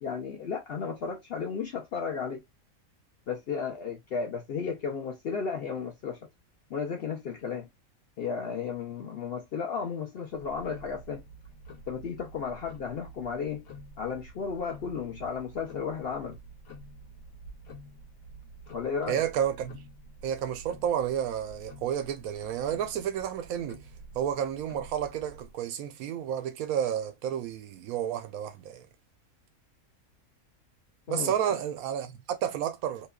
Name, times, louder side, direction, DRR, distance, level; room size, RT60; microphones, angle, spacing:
voice 1, 0.0-2.4 3.3-6.2 6.7-7.7 8.2-11.2 11.9-13.6 14.0-16.4 18.7-19.2 31.1-31.3, left 6 dB, 60° left, 0.6 m, -34 dB
Tick-tock, 10.3-25.6, right 2 dB, 85° left, 1.2 m, -49 dB
voice 2, 19.1-19.8 20.2-23.8 24.1-28.9 31.1-33.1, right 9 dB, 80° right, 1.0 m, -31 dB
2.9 x 2.1 x 2.3 m
omnidirectional pair, 1.5 m